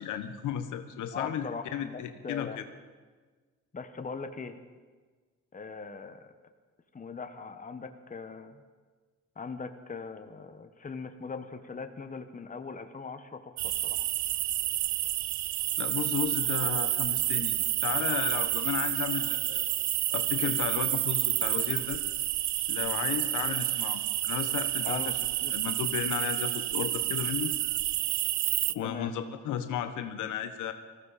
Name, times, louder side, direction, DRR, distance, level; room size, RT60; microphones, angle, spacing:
voice 1, 0.0-2.6 15.8-17.6 17.8-19.6 20.1-22.0 22.7-25.0 25.5-27.5 28.7-30.7, left 9 dB, 80° left, 8 dB, 1.1 m, -34 dB
voice 2, 0.9-2.6 3.7-4.5 5.5-6.3 6.9-8.6 9.4-14.0 24.8-25.1 25.4-25.5 28.8-29.1, left 5 dB, 25° left, 7 dB, 1.3 m, -40 dB
sound 1, 13.6-28.7, right 15 dB, 70° right, 0.5 m, -29 dB
19.5 x 15.5 x 4.2 m, 1.4 s
cardioid pair, 90°, 30 cm